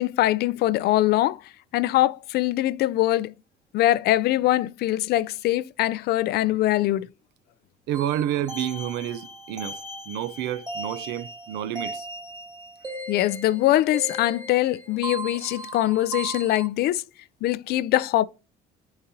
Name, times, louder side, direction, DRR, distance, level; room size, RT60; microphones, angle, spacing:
voice 1, 0.0-1.4 1.7-3.3 3.7-7.1 13.1-17.0 17.4-18.3, left 15 dB, 70° left, 0.4 m, -22 dB
sound 1, 7.9-16.7, right 2 dB, 25° right, 2.0 m, -37 dB
voice 2, 7.9-9.8 10.1-12.1, right 11 dB, 85° right, 0.6 m, -29 dB
9.4 x 3.9 x 2.7 m
cardioid pair, 110°, 17 cm